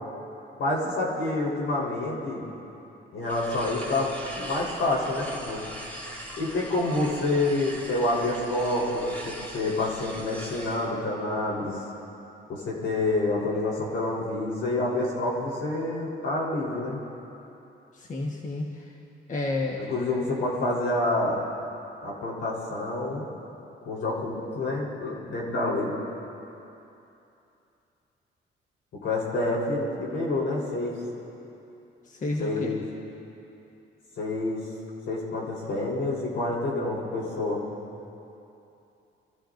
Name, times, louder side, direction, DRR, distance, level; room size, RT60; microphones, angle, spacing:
voice 1, 0.6-2.5 3.1-5.6 6.4-11.8 12.5-17.0 19.8-21.4 22.0-23.2 23.8-25.9 29.0-30.9 32.4-32.8 34.2-34.6 35.1-37.6, left 2 dB, 75° left, -4 dB, 3.9 m, -28 dB
sound 1, 3.2-10.9, equal, 10° left, 2.7 m, -41 dB
voice 2, 17.9-18.9 19.3-19.8 32.0-32.8, left 2 dB, 40° left, -1 dB, 1.3 m, -31 dB
28.0 x 14.5 x 2.6 m, 2.9 s
cardioid pair, 90°, 20 cm